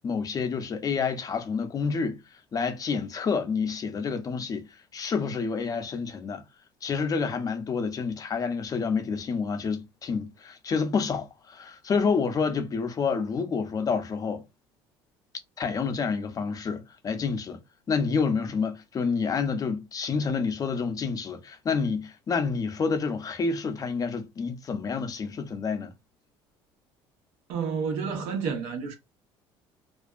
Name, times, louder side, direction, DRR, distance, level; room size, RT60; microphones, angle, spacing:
voice 1, 0.0-2.2 2.5-4.7 4.9-6.4 6.8-14.4 15.6-17.6 17.9-25.9, left 5 dB, 35° left, 0.5 m, -28 dB
voice 2, 27.5-29.0, right 6 dB, 80° right, 0.9 m, -30 dB
2.5 x 2.3 x 2.3 m
supercardioid pair, 95°, 11 cm